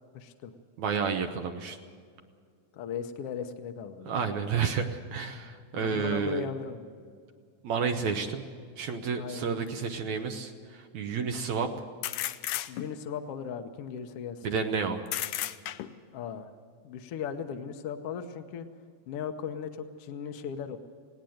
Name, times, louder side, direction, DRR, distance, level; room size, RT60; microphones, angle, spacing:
voice 1, 0.1-0.5 2.7-4.3 5.5-6.8 9.2-9.5 12.7-14.5 16.1-16.5 16.8-18.7 19.1-20.8, left 7 dB, 65° left, 6 dB, 1.7 m, -37 dB
voice 2, 0.8-1.8 4.1-6.5 7.6-8.4 8.8-11.7 14.4-15.1, right 5 dB, 75° right, 4 dB, 2.3 m, -30 dB
sound 1, 9.6-9.7 12.0-13.1 15.1-16.1, left 13 dB, 90° left, 2.2 m, -33 dB
19.0 x 18.0 x 7.8 m, 2.1 s
omnidirectional pair, 3.3 m